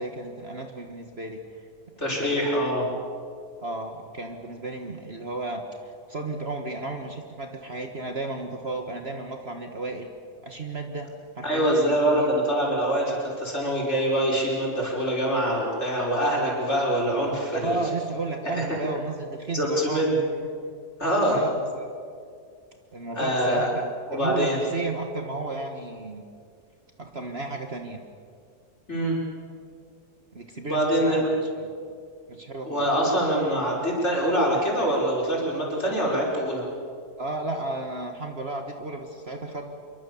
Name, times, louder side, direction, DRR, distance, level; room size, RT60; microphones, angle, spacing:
voice 1, 0.0-1.4 2.2-2.6 2.9-3.0 3.6-5.6 6.1-10.1 10.4-12.3 17.5-20.1 21.3-21.9 22.9-26.2 27.0-28.0 30.3-31.7 32.3-32.8 37.2-39.7, right 2 dB, 40° right, 4 dB, 1.7 m, -33 dB
voice 2, 2.0-2.8 11.4-17.8 18.5-18.6 19.5-20.2 21.0-21.4 23.2-23.7 24.1-24.6 28.9-29.2 30.7-31.3 32.6-36.6, equal, 45° left, -3 dB, 6.1 m, -24 dB
26.5 x 23.5 x 7.2 m, 2.2 s
omnidirectional pair, 1.7 m